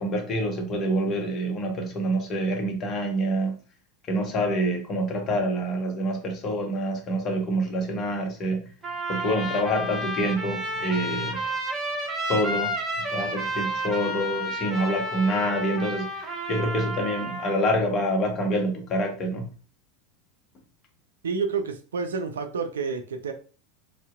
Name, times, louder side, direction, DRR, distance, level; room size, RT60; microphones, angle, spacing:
voice 1, 0.0-3.5 4.1-8.7 9.1-11.5 12.3-19.5, equal, 35° left, 0.7 m, -27 dB
Trumpet, 8.8-17.6, right 1 dB, 20° right, 0.9 m, -31 dB
voice 2, 21.2-23.3, right 5 dB, 80° right, 0.4 m, -29 dB
2.6 x 2.1 x 2.3 m
hypercardioid pair, 85°, 0 cm